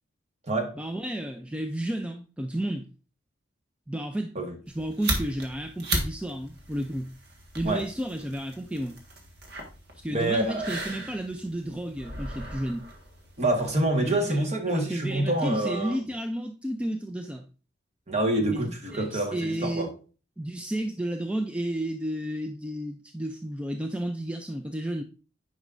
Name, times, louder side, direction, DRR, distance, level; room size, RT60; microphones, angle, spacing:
voice 1, 0.8-2.9 3.9-4.3 4.7-7.1 7.6-9.0 9.9-12.9 14.0-17.5 18.5-19.9 20.4-25.0, right 1 dB, 5° right, 0.4 m, -32 dB
sound 1, 4.7-13.8, right 2 dB, 60° right, 1.6 m, -36 dB
voice 2, 10.1-10.8 13.4-16.0 18.1-19.9, right 1 dB, 35° right, 1.4 m, -26 dB
9.2 x 5.4 x 2.5 m
head